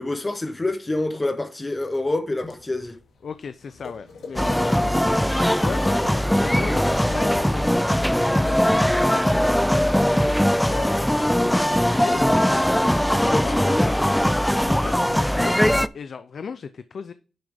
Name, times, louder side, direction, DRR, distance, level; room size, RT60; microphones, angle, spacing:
voice 1, 0.0-3.0 13.2-13.9, left 2 dB, 20° left, 0.8 m, -27 dB
sound 1, 2.4-8.6, left 4 dB, 85° left, 2.2 m, -44 dB
voice 2, 3.2-12.7 13.2-14.0 14.3-15.6 15.9-17.1, left 6 dB, 60° left, 0.5 m, -37 dB
sound 2, 4.4-15.9, equal, 5° left, 0.3 m, -20 dB
10.0 x 6.5 x 3.5 m
wide cardioid pair, 130°, 0 cm